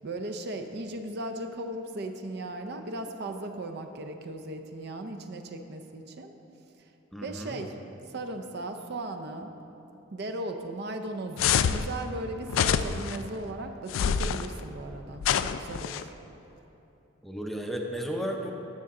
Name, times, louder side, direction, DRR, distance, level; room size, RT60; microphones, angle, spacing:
voice 1, 0.0-6.3 7.2-7.8 8.1-9.5 10.1-16.1, right 1 dB, 55° right, 6 dB, 0.5 m, -37 dB
voice 2, 7.1-7.6 17.2-18.5, equal, ahead, 1 dB, 0.5 m, -34 dB
sound 1, 11.4-11.9 12.5-13.2 13.9-14.5 15.2-16.0, left 8 dB, 85° left, 0.3 m, -26 dB
13.0 x 6.5 x 3.7 m, 3.0 s
head